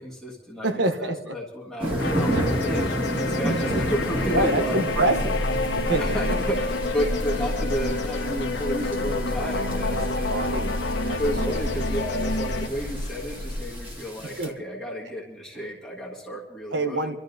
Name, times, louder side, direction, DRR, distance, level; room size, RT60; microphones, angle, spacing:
voice 1, 0.0-4.8 6.0-10.6 11.2-17.0, equal, ahead, -6 dB, 1.5 m, -32 dB
voice 2, 0.6-1.4 4.3-5.5 5.7-6.4 9.9-10.7 11.0-11.6 14.2-14.6 16.7-17.2, right 2 dB, 85° right, 9 dB, 0.9 m, -27 dB
sound 1, 1.8-14.5, right 1 dB, 30° right, 1.8 m, -32 dB
sound 2, 2.0-12.7, left 3 dB, 85° left, 0.9 m, -29 dB
sound 3, 4.9-14.0, left 1 dB, 45° left, 0.8 m, -31 dB
27.0 x 12.5 x 2.7 m, 1.2 s
head